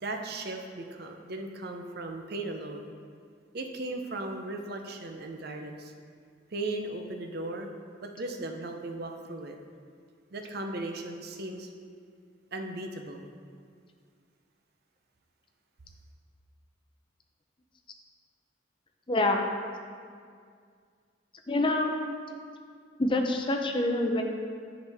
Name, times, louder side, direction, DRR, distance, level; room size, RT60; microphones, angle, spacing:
voice 1, 0.0-2.8 3.5-5.9 6.5-7.7 8.0-9.6 10.3-11.7 12.5-13.3, right 2 dB, 50° right, 3 dB, 0.6 m, -37 dB
voice 2, 19.1-19.5 21.5-22.0 23.0-24.2, left 2 dB, 25° left, 3 dB, 0.5 m, -26 dB
8.1 x 6.3 x 3.5 m, 2.1 s
head